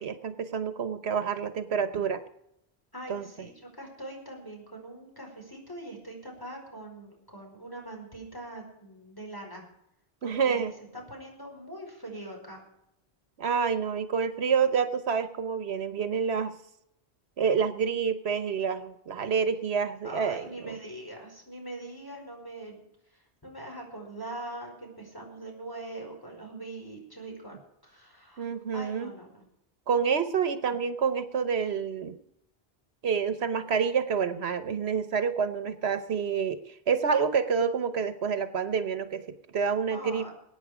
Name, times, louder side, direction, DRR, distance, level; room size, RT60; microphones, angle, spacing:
voice 1, 0.0-2.2 3.1-3.5 10.2-10.7 13.4-16.5 17.4-20.8 28.4-29.1 29.9-32.2 33.0-40.3, right 6 dB, 80° right, 11 dB, 1.2 m, -28 dB
voice 2, 2.9-9.7 10.2-10.7 10.9-12.7 20.0-22.8 23.1-28.5 28.7-29.4 39.9-40.3, right 1 dB, 20° left, 0 dB, 5.2 m, -42 dB
22.0 x 9.3 x 5.0 m, 0.79 s
omnidirectional pair, 1.1 m